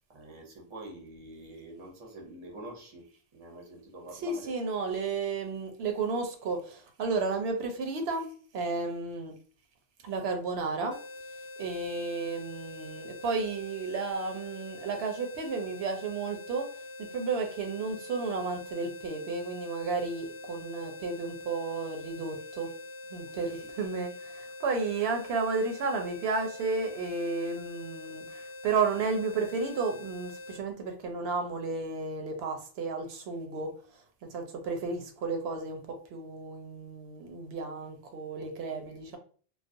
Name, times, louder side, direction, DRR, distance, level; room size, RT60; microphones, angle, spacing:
voice 1, 0.1-3.1 3.3-4.5 23.4-23.7 38.4-39.1, right 2 dB, 35° right, 1 dB, 0.6 m, -47 dB
voice 2, 4.2-9.3 10.0-11.0 11.6-16.7 17.1-22.7 23.1-33.7 34.3-39.2, right 4 dB, 80° right, 4 dB, 0.8 m, -32 dB
sound 1, 10.9-30.6, left 2 dB, 45° left, 0.4 m, -44 dB
2.4 x 2.0 x 2.5 m, 0.43 s
omnidirectional pair, 1.0 m